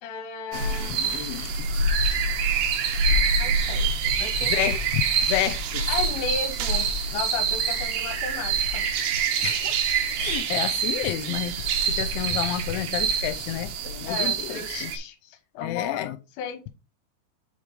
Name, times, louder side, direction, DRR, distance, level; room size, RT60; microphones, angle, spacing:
voice 1, 0.0-1.0 3.4-4.8 5.9-8.9 14.0-16.7, left 7 dB, 75° left, 3.1 m, -34 dB
voice 2, 0.5-1.7 4.4-5.9 9.4-9.7 10.2-11.6 11.9-14.9 15.6-16.2, left 13 dB, 90° left, 3.0 m, -30 dB
sound 1, 0.5-15.0, right 4 dB, 75° right, 2.9 m, -26 dB
7.3 x 3.3 x 5.1 m
omnidirectional pair, 5.3 m